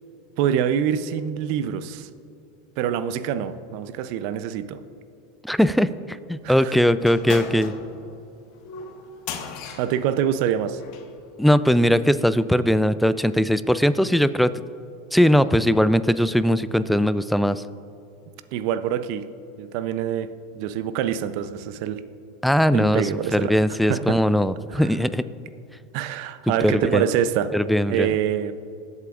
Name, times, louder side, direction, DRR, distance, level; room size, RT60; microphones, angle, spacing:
voice 1, 0.4-2.1 2.8-4.8 6.4-6.8 9.8-10.8 18.5-19.3 19.6-22.0 22.7-23.5 23.9-24.2 24.7-24.9 25.9-27.5 27.9-28.6, right 9 dB, 60° right, 12 dB, 0.6 m, -25 dB
voice 2, 5.4-7.7 11.4-14.5 15.1-17.6 22.4-25.2 26.6-27.0 27.5-28.1, equal, ahead, 14 dB, 0.4 m, -20 dB
sound 1, 7.0-11.1, left 6 dB, 55° left, 1.2 m, -37 dB
20.0 x 8.1 x 2.5 m, 2.6 s
hypercardioid pair, 100°, 0 cm